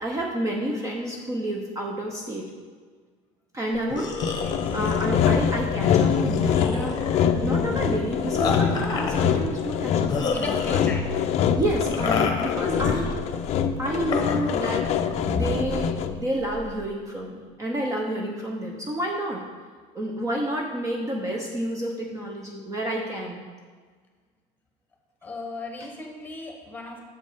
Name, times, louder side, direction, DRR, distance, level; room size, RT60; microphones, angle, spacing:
voice 1, 0.0-2.5 3.5-4.3 4.7-6.9 7.4-11.0 11.5-13.2 13.8-14.9 15.3-19.4 19.9-23.4, right 1 dB, 20° right, 0 dB, 0.8 m, -29 dB
sound 1, 3.7-16.9, left 4 dB, 25° left, 0.9 m, -32 dB
Sawing, 4.2-16.3, left 7 dB, 50° left, 0.5 m, -24 dB
voice 2, 4.4-4.8 10.3-11.0 15.3-15.4 25.2-27.0, left 3 dB, 10° left, 1 dB, 1.3 m, -36 dB
7.3 x 5.2 x 5.5 m, 1.5 s
cardioid pair, 150°, 15 cm